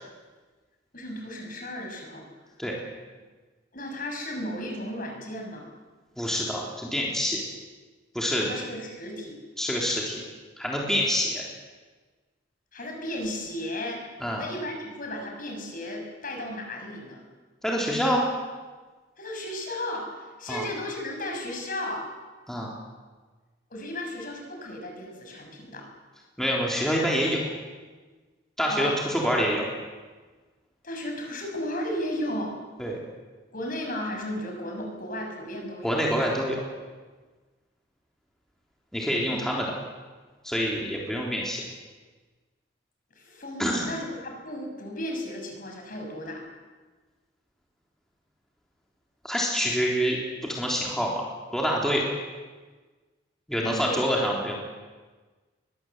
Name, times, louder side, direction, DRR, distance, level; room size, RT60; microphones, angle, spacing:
voice 1, 0.9-2.3 3.7-5.7 8.3-9.4 12.7-14.0 14.4-17.2 19.2-22.0 23.7-25.9 28.7-28.9 30.8-32.5 33.5-36.0 39.3-39.4 43.1-46.4 53.6-54.0, left 1 dB, 50° left, 1 dB, 6.7 m, -34 dB
voice 2, 6.2-7.4 8.1-8.5 9.6-10.2 10.6-11.5 14.2-14.4 17.6-18.3 20.5-20.6 22.5-22.7 26.4-27.5 28.6-29.7 32.8-33.0 35.8-36.6 38.9-39.7 40.4-41.6 43.6-43.9 49.2-51.3 51.5-52.1 53.5-54.5, equal, 5° left, -3 dB, 3.6 m, -26 dB
22.5 x 21.5 x 8.0 m, 1.3 s
head